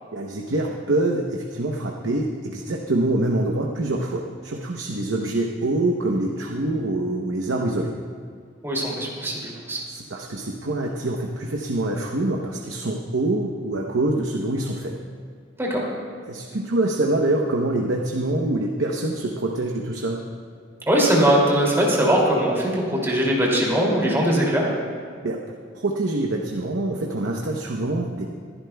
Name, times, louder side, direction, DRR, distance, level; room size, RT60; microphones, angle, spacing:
voice 1, 0.1-8.0 9.9-15.0 16.3-20.2 25.2-25.4 25.7-28.3, right 2 dB, 75° right, 0 dB, 0.8 m, -25 dB
voice 2, 8.6-9.8 15.6-15.8 20.9-24.7, right 1 dB, 15° right, -3 dB, 2.5 m, -21 dB
21.5 x 11.0 x 2.3 m, 2.1 s
head